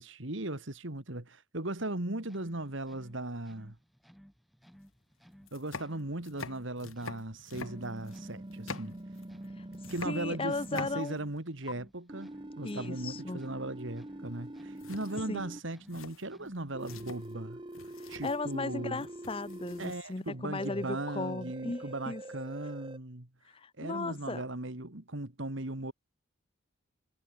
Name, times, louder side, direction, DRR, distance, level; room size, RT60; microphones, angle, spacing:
voice 1, 0.0-3.8 5.5-9.0 9.9-12.3 12.6-17.6 18.1-19.1 19.8-23.3 23.8-25.9, right 2 dB, 60° right, 2.2 m, -38 dB
sound 1, 2.2-17.4, equal, ahead, 5.1 m, -59 dB
sound 2, 4.7-4.8 5.4-9.5 9.7-11.4 11.7-11.8 14.3-14.5 14.8-20.2, left 4 dB, 70° left, 1.7 m, -46 dB
sound 3, 7.5-11.0 12.1-15.6 16.7-19.9 20.6-23.0, right 1 dB, 20° right, 0.9 m, -45 dB
voice 2, 10.0-11.2 12.6-13.4 15.3-15.5 18.0-22.2 23.5-24.4, left 3 dB, 25° left, 0.6 m, -36 dB
head